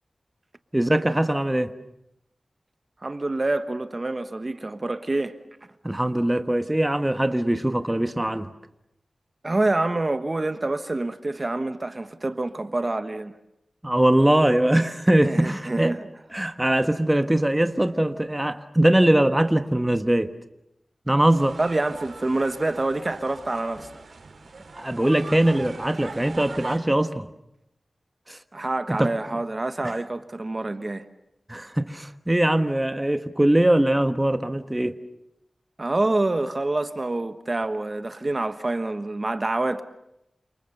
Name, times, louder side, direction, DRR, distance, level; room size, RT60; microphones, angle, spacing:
voice 1, 0.7-1.7 5.8-8.5 13.8-16.0 16.3-20.3 21.1-21.6 24.8-27.3 28.3-28.4 28.9-29.1 29.8-29.9 31.5-35.0, right 1 dB, 15° right, 1.3 m, -21 dB
voice 2, 3.0-5.3 9.4-13.3 15.2-16.1 21.6-23.9 28.5-31.1 35.8-39.8, right 2 dB, 35° right, 1.3 m, -27 dB
sound 1, 21.4-26.8, right 3 dB, 80° right, 4.2 m, -40 dB
29.5 x 27.5 x 6.7 m
wide cardioid pair, 85°, 0 cm